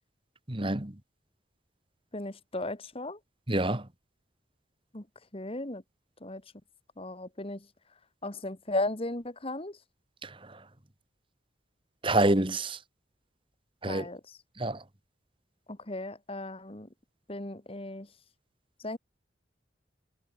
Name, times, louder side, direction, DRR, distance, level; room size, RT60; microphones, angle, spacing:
voice 1, 0.5-0.9 3.5-3.8 10.2-10.3 12.0-12.8 13.8-14.1 14.6-14.8, right 2 dB, 25° right, 1.7 m, -27 dB
voice 2, 2.1-3.2 4.9-5.0 5.3-5.8 6.2-6.4 7.0-7.7 8.2-9.8 13.9-14.2 15.7-16.9 17.3-18.1 18.8-19.0, left 2 dB, 30° left, 1.8 m, -35 dB
head